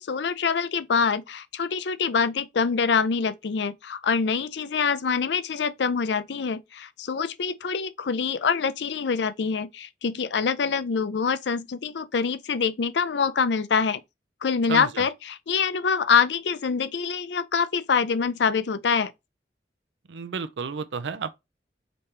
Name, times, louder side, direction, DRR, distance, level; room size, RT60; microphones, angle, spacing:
voice 1, 0.0-14.0 14.4-19.1, left 5 dB, 75° left, 0.5 m, -25 dB
voice 2, 14.7-15.0 20.1-21.3, right 5 dB, 85° right, 0.5 m, -32 dB
5.2 x 2.9 x 3.3 m
head